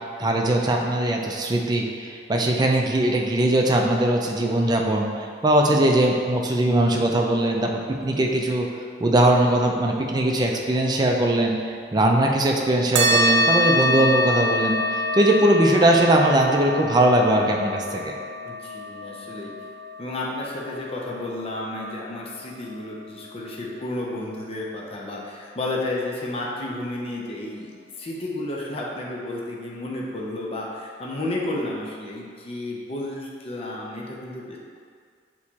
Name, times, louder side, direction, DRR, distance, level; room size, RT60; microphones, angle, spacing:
voice 1, 0.2-5.1 5.4-8.7 9.0-18.1, right 1 dB, 25° right, 1 dB, 0.4 m, -20 dB
sound 1, 13.0-21.9, equal, 80° right, 0.5 m, -25 dB
voice 2, 18.4-19.5 20.0-34.6, left 1 dB, 35° left, -3 dB, 0.6 m, -32 dB
6.3 x 3.0 x 2.8 m, 2.1 s
head